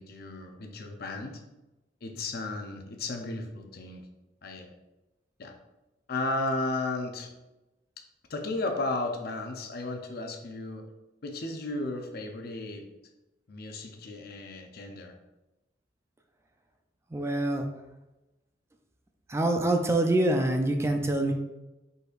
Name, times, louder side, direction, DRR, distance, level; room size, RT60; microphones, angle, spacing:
voice 1, 0.0-1.4 2.0-4.0 4.4-4.7 5.4-5.5 6.1-7.3 8.3-10.9 11.2-12.9 13.5-15.1, left 2 dB, 60° left, 4 dB, 0.6 m, -34 dB
voice 2, 17.1-17.6 19.3-21.3, right 1 dB, 15° right, 4 dB, 0.4 m, -25 dB
5.3 x 4.0 x 2.5 m, 1.0 s
head